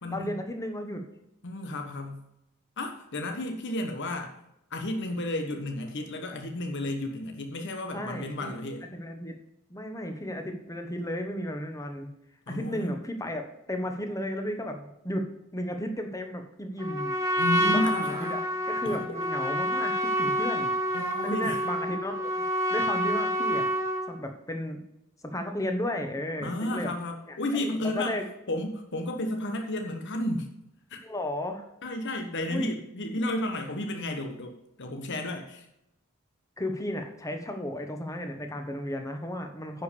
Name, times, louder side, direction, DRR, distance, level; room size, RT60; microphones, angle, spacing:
voice 1, 0.1-1.0 7.9-8.5 8.9-9.4 9.7-12.1 12.5-15.2 15.5-18.4 18.7-20.7 21.2-22.3 22.7-23.7 24.1-24.8 25.2-26.9 27.3-28.2 31.0-31.6 32.5-32.7 33.2-33.3 36.6-39.8, left 1 dB, 15° left, 5 dB, 1.2 m, -34 dB
voice 2, 1.4-2.2 2.8-4.3 4.7-8.9 12.5-13.0 17.4-18.4 18.8-19.1 20.9-21.6 26.4-28.2 28.5-30.5 30.9-31.0 31.8-35.7, left 1 dB, 55° left, 4 dB, 1.2 m, -32 dB
Trumpet, 16.8-24.1, equal, 15° right, 1.5 m, -28 dB
10.5 x 5.2 x 6.8 m, 0.83 s
head